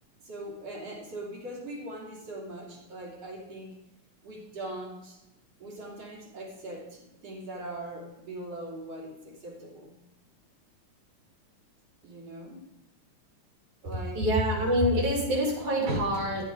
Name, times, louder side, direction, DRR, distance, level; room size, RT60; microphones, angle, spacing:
voice 1, 0.2-3.8 4.2-5.2 5.6-9.9 12.0-12.6 13.8-14.2, right 1 dB, 55° right, -2 dB, 3.8 m, -41 dB
voice 2, 14.1-16.4, equal, 70° right, -2 dB, 4.3 m, -26 dB
13.0 x 8.7 x 5.0 m, 0.94 s
omnidirectional pair, 3.4 m